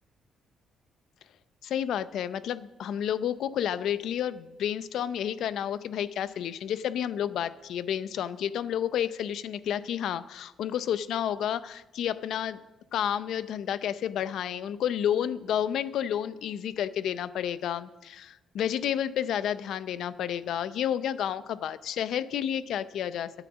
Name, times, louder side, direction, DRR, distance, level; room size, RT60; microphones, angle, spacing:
voice 1, 1.6-12.6 12.9-23.3, left 9 dB, 75° left, 15 dB, 0.5 m, -30 dB
10.5 x 9.0 x 7.2 m, 1.1 s
cardioid pair, 90°, 0 cm